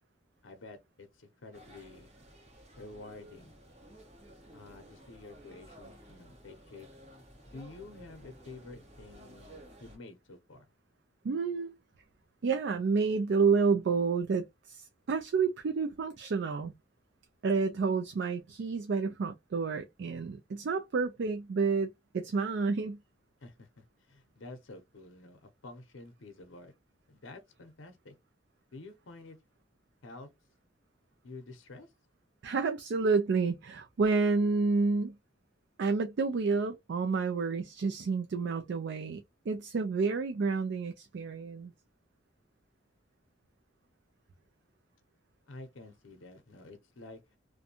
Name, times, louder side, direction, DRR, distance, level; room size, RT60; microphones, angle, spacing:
voice 1, 0.4-2.1 2.8-3.5 4.5-6.9 7.5-10.6 23.4-26.7 27.1-28.1 28.7-29.4 30.0-30.3 31.2-31.9 45.5-47.2, left 2 dB, 85° left, 0.7 m, -49 dB
sound 1, 1.5-10.0, equal, 40° right, 1.1 m, -54 dB
voice 2, 11.2-11.7 12.4-16.7 17.4-23.0 32.4-35.2 35.8-41.7, right 4 dB, 60° right, 0.4 m, -29 dB
2.5 x 2.2 x 2.7 m
head